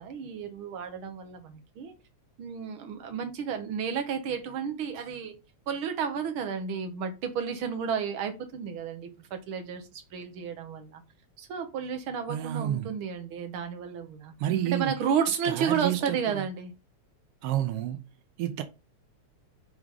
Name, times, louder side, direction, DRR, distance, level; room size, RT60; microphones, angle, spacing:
voice 1, 0.0-1.9 2.4-5.4 5.7-11.0 11.4-14.4 14.7-16.7, right 7 dB, 55° right, 1.7 m, -32 dB
voice 2, 12.3-12.9 14.4-14.9 15.4-16.2 17.4-18.0 18.4-18.6, right 12 dB, 80° right, 1.3 m, -29 dB
9.4 x 3.6 x 3.8 m
omnidirectional pair, 3.3 m